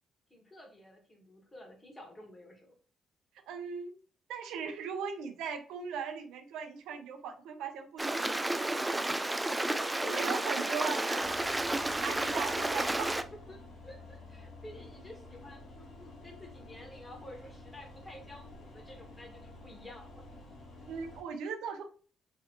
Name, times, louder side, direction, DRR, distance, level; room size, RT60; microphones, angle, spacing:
voice 1, 0.3-2.7 9.8-13.1 13.5-20.2, left 1 dB, 20° left, 2 dB, 1.5 m, -50 dB
voice 2, 3.5-4.0 4.3-8.5 10.0-11.2 12.0-13.1 20.9-21.8, right 6 dB, 90° right, 6 dB, 0.6 m, -38 dB
Stream, 8.0-13.2, right 1 dB, 10° right, 0.3 m, -31 dB
sound 1, 11.2-21.2, left 2 dB, 65° left, 1.6 m, -50 dB
3.7 x 3.3 x 2.9 m, 0.42 s
cardioid pair, 90°, 0 cm